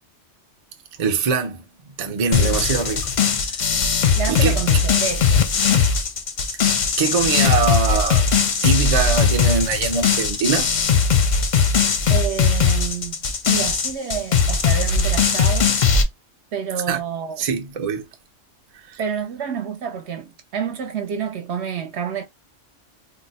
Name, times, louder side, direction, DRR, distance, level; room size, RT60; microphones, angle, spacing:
voice 1, 1.0-1.6 2.0-3.0 3.6-4.0 4.3-4.6 6.6-6.7 7.0-8.3 8.6-10.7 16.9-17.0 17.4-18.1 18.9-19.0, right 5 dB, 45° right, 0.5 m, -23 dB
sound 1, 2.3-16.0, left 5 dB, 50° left, 0.6 m, -19 dB
voice 2, 4.2-5.4 12.1-13.2 13.5-15.8 16.5-17.4 19.0-22.2, right 7 dB, 65° right, 0.9 m, -28 dB
2.6 x 2.0 x 4.0 m
omnidirectional pair, 1.3 m